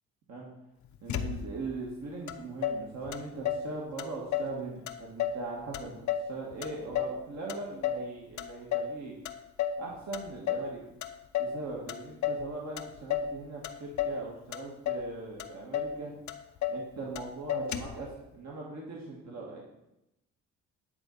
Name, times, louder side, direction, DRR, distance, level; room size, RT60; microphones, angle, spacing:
voice 1, 1.0-9.1 9.8-10.8 11.4-16.2 16.7-19.6, right 3 dB, 60° right, -3 dB, 2.0 m, -40 dB
Motor vehicle (road), 1.1-1.7 2.3-2.4 2.6-3.7 4.0-4.6 4.9-5.4 5.7-7.2 7.5-8.1 8.4-9.0 9.2-9.8 10.1-10.7 11.0-11.6 11.9-12.5 12.8-13.3 13.6-14.2 14.5-15.1 15.4-15.5 15.7-16.0 16.3-16.8 17.1-17.2 17.5-18.0, left 8 dB, 70° left, 0.8 m, -32 dB
9.6 x 4.1 x 7.2 m, 0.90 s
cardioid pair, 90°, 30 cm